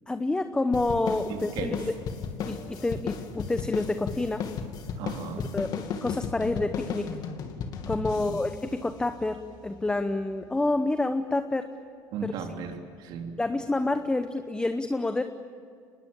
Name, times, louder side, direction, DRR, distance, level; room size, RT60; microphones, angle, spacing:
voice 1, 0.1-1.8 2.5-4.5 5.5-7.1 7.9-11.7 12.2-12.3 13.4-15.2, left 2 dB, 10° left, 9 dB, 0.9 m, -28 dB
sound 1, 0.7-9.6, left 6 dB, 50° left, 2.4 m, -35 dB
voice 2, 1.3-1.9 5.0-5.5 8.2-8.4 12.1-13.3, right 5 dB, 65° right, 4 dB, 3.3 m, -36 dB
24.5 x 20.5 x 8.8 m, 2.3 s
cardioid pair, 120°, 8 cm